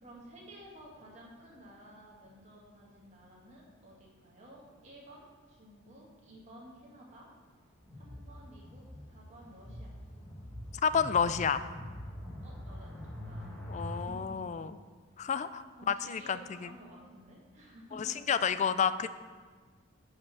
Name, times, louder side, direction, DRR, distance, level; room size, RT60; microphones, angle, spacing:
voice 1, 0.0-7.3 7.9-9.9 12.4-13.5 13.9-14.5 15.8-18.5, equal, 35° right, -3 dB, 2.0 m, -53 dB
sound 1, 7.8-14.0, equal, 5° left, 1.8 m, -44 dB
voice 2, 10.8-11.7 13.7-14.7 15.2-16.7 17.9-19.1, left 6 dB, 35° left, 13 dB, 0.3 m, -30 dB
8.5 x 5.5 x 6.0 m, 1.5 s
head